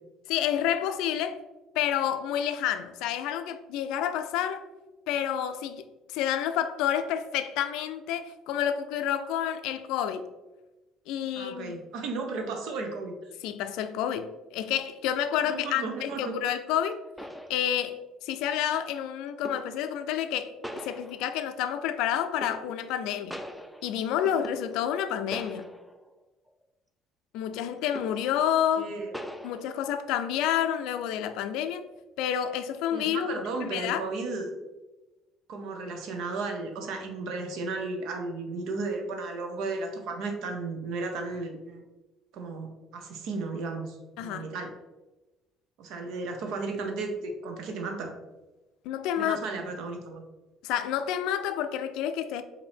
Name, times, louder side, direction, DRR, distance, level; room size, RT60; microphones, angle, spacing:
voice 1, 0.3-1.4 1.8-4.6 5.1-10.2 11.1-11.7 13.4-17.0 17.5-20.5 20.8-23.4 23.8-25.7 27.3-28.9 29.4-31.8 32.2-33.3 33.6-34.0 44.2-44.5 48.8-49.4 50.6-52.4, left 10 dB, 80° left, 0.3 m, -29 dB
voice 2, 11.3-13.3 15.4-16.4 28.8-29.1 32.9-34.5 35.5-41.8 42.3-44.7 45.8-48.1 49.2-50.3, right 3 dB, 75° right, 0.7 m, -34 dB
sound 1, 16.6-16.7 17.2-18.1 19.4-19.9 20.6-21.5 22.4-23.0 23.3-25.0 25.3-26.1 26.5-26.6 27.9-28.4 29.1-29.6, equal, ahead, 0.4 m, -41 dB
5.0 x 2.7 x 3.4 m
supercardioid pair, 90°, 0 cm